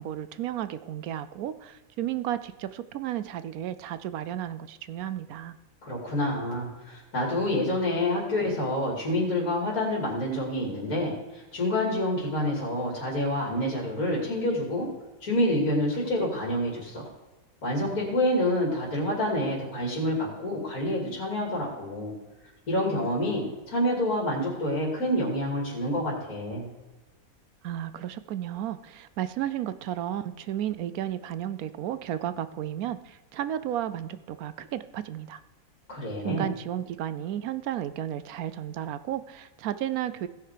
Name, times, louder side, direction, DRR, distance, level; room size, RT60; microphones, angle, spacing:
voice 1, 0.0-5.6 27.6-35.4 36.2-40.3, right 11 dB, 80° right, 13 dB, 1.0 m, -33 dB
voice 2, 5.8-14.9 15.2-17.1 17.6-22.1 22.7-26.7 35.9-36.5, left 1 dB, 75° left, -3 dB, 3.1 m, -27 dB
17.0 x 5.9 x 4.9 m, 1.2 s
omnidirectional pair, 1.5 m